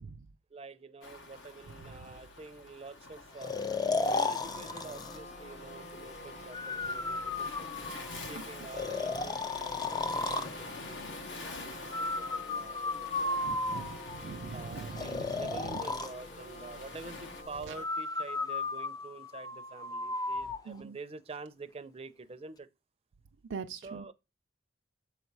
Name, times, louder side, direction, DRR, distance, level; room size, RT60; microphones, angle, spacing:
voice 1, 0.5-3.6 3.9-7.7 8.2-13.8 14.5-22.7 23.8-24.1, right 3 dB, 30° right, 0.5 m, -47 dB
Waves surf, 1.0-17.4, left 3 dB, 75° left, 1.2 m, -48 dB
voice 2, 1.8-2.1 8.1-8.3 13.4-15.8 17.7-17.8 20.7-21.0 23.5-24.0, right 5 dB, 80° right, 0.4 m, -43 dB
Breathing, 3.4-5.2 6.5-8.2 8.7-10.5 11.9-14.2 15.0-16.1 17.7-20.6, left 3 dB, 20° left, 0.4 m, -34 dB
sound 1, 4.4-17.9, left 1 dB, 40° left, 0.8 m, -48 dB
7.1 x 4.1 x 4.6 m
head